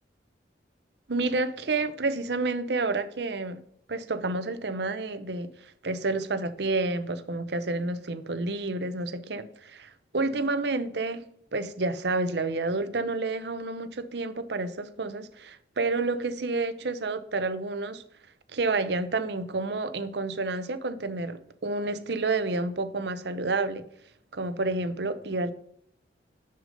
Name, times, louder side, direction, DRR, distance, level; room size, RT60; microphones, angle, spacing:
voice 1, 1.1-3.6 3.9-11.2 11.5-18.0 18.5-23.8 24.3-25.5, right 3 dB, 70° right, 0.8 m, -29 dB
6.8 x 6.6 x 5.2 m
head